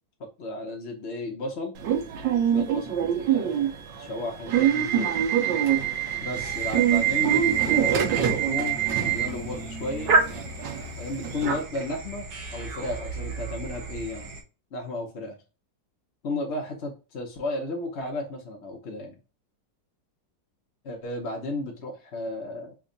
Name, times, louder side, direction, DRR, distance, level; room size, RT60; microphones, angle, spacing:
voice 1, 0.4-1.8 2.5-3.7 4.0-5.1 6.2-10.1 11.0-14.3 14.7-15.4 16.2-19.2 20.8-22.7, left 2 dB, 50° left, -1 dB, 0.8 m, -34 dB
Subway metro underground / Alarm, 1.8-11.6, right 9 dB, 85° right, 1.4 m, -25 dB
sound 1, 6.4-14.4, right 3 dB, 65° right, 1.3 m, -32 dB
3.5 x 2.2 x 3.7 m, 0.32 s
omnidirectional pair, 1.9 m